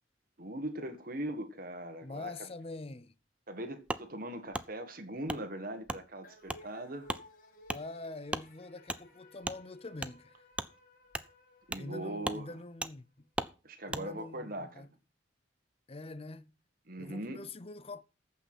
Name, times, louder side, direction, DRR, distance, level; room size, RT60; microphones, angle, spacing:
voice 1, 0.4-2.5 3.5-7.1 11.7-12.5 13.6-14.9 16.9-17.5, right 1 dB, 50° right, 1.7 m, -40 dB
voice 2, 2.0-3.1 7.7-10.5 11.8-13.3 13.9-14.9 15.9-16.5 17.0-18.0, left 2 dB, 30° left, 0.6 m, -44 dB
Wood, 3.9-4.0 4.5-4.7 5.3-5.4 5.9-6.0 6.5-6.6 7.1-7.2 7.7-7.8 8.3-8.5 8.9-9.0 9.4-9.6 10.0-10.1 10.5-10.7 11.1-11.3 11.7-11.9 12.2-12.4 12.8-12.9 13.4-13.5 13.9-14.0, right 1 dB, 5° right, 0.5 m, -36 dB
sound 1, 6.2-12.8, left 1 dB, 45° left, 2.6 m, -58 dB
14.5 x 5.7 x 6.0 m
head